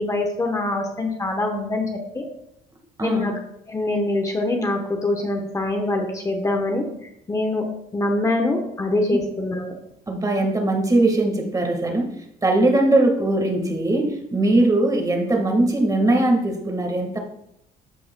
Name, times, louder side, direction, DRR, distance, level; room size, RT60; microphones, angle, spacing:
voice 1, 0.0-1.9 2.1-2.2 3.0-3.3 3.7-6.8 7.3-7.7 7.9-9.7, left 2 dB, 20° left, 3 dB, 1.0 m, -24 dB
voice 2, 10.1-12.1 12.4-17.2, right 2 dB, 20° right, 3 dB, 1.6 m, -20 dB
13.5 x 5.3 x 2.2 m, 0.77 s
cardioid pair, 110°, 17 cm